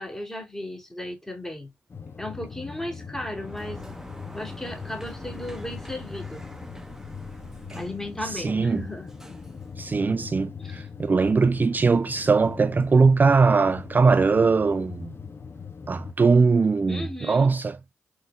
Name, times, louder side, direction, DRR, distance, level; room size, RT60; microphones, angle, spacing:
voice 1, 0.0-1.7 2.2-3.9 4.3-6.5 7.7-9.1 10.6-10.9 16.9-17.5, left 1 dB, 10° left, 2.6 m, -35 dB
sound 1, 1.9-16.1, left 6 dB, 45° left, 0.6 m, -41 dB
Sliding door, 3.1-10.3, equal, 5° right, 1.0 m, -43 dB
voice 2, 8.2-8.8 9.8-15.1 15.9-17.8, right 4 dB, 30° right, 0.3 m, -21 dB
4.8 x 4.1 x 2.3 m
hypercardioid pair, 40°, 6 cm